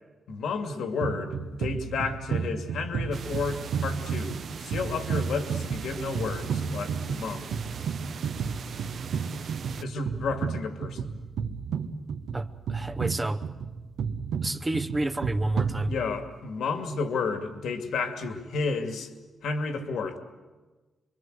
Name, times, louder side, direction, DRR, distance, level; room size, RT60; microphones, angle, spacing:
voice 1, 0.3-7.6 9.8-11.2 15.6-19.1 19.4-20.2, left 4 dB, 80° left, 6 dB, 2.5 m, -32 dB
sound 1, 1.0-16.4, right 6 dB, 80° right, 1.5 m, -32 dB
sound 2, 3.1-9.8, right 6 dB, 60° right, 0.8 m, -40 dB
voice 2, 12.3-13.4 14.4-15.9, right 2 dB, 15° right, 10 dB, 0.8 m, -29 dB
27.0 x 23.0 x 8.1 m, 1.3 s
cardioid pair, 125°, 0 cm